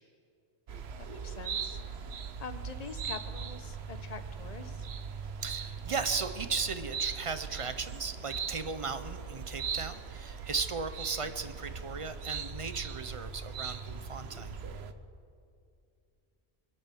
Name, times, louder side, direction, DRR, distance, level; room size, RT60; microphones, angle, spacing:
sound 1, 0.7-14.9, right 6 dB, 70° right, 1.1 m, -39 dB
voice 1, 1.1-1.8 2.4-4.9, left 4 dB, 40° left, 10 dB, 0.9 m, -44 dB
voice 2, 5.4-14.5, right 4 dB, 35° right, 10 dB, 0.8 m, -36 dB
25.0 x 8.7 x 6.3 m, 2.5 s
omnidirectional pair, 1.1 m